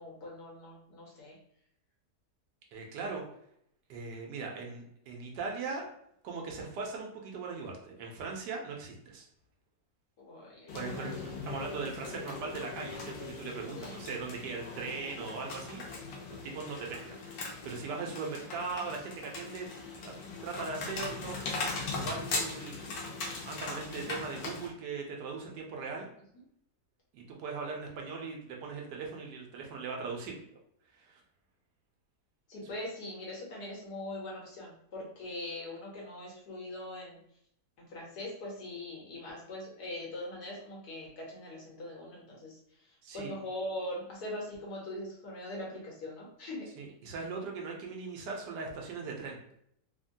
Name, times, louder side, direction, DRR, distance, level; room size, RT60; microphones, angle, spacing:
voice 1, 0.0-1.4 10.3-11.2 13.7-14.0 32.5-37.2 37.8-46.6, left 1 dB, 70° left, -4 dB, 1.5 m, -42 dB
voice 2, 2.7-3.2 3.9-5.9 6.2-9.3 10.7-16.1 16.4-19.6 20.0-20.2 20.4-21.6 21.9-23.0 23.4-26.1 27.1-30.3 30.9-31.2 32.6-32.7 43.0-43.3 46.8-49.4, right 4 dB, 85° right, 0 dB, 1.3 m, -39 dB
sound 1, 10.7-24.7, left 3 dB, 85° left, 1.3 m, -40 dB
3.4 x 2.1 x 2.6 m, 0.70 s
omnidirectional pair, 1.8 m